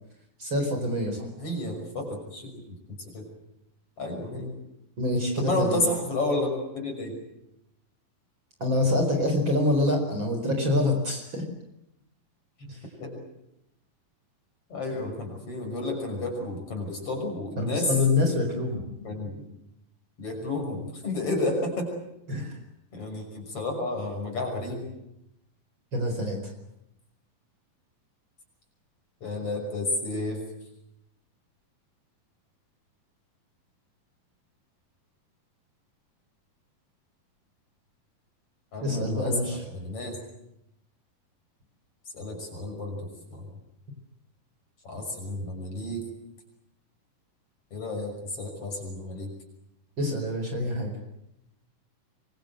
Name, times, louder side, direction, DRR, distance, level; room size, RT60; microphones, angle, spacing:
voice 1, 0.4-1.3 5.0-5.8 8.6-11.4 12.7-12.8 17.6-18.8 22.3-22.5 25.9-26.4 38.8-39.6 50.0-50.9, left 1 dB, 35° right, 4 dB, 5.3 m, -26 dB
voice 2, 1.4-3.2 4.0-4.5 5.4-7.2 12.6-12.7 13.0-13.2 14.7-18.0 19.0-19.4 20.2-21.9 22.9-24.9 29.2-30.4 38.7-40.2 42.1-43.5 44.8-46.0 47.7-49.3, left 2 dB, 40° left, 3 dB, 6.9 m, -31 dB
25.5 x 24.0 x 7.9 m, 0.83 s
omnidirectional pair, 4.1 m